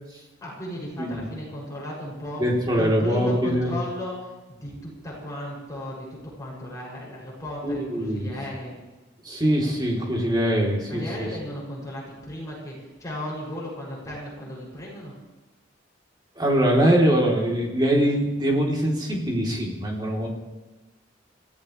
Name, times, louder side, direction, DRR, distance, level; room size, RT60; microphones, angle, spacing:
voice 1, 0.4-2.4 2.8-8.7 10.9-15.1, left 1 dB, 20° left, -5 dB, 7.1 m, -35 dB
voice 2, 2.4-3.8 7.6-8.3 9.2-11.0 16.4-20.3, equal, 25° right, -2 dB, 3.5 m, -23 dB
25.0 x 16.5 x 3.4 m, 1.2 s
head